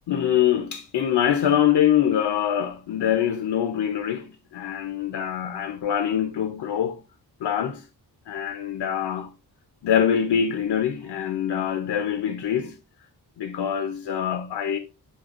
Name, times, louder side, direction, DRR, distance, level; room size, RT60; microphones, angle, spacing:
voice 1, 0.1-7.0 7.4-7.9 8.3-9.3 9.8-12.8 13.4-14.8, left 9 dB, 85° left, 0.7 m, -24 dB
8.3 x 5.6 x 2.4 m
wide cardioid pair, 160°, 39 cm